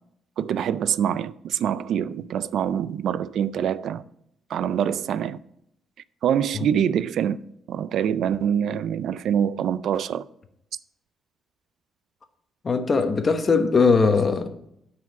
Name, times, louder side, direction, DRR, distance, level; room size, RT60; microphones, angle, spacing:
voice 1, 0.4-4.0 4.5-5.4 6.2-7.4 7.7-10.2, right 9 dB, 70° right, 0.3 m, -25 dB
voice 2, 12.6-14.5, left 4 dB, 40° left, 1.0 m, -20 dB
9.5 x 4.8 x 5.9 m
cardioid pair, 90°, 0 cm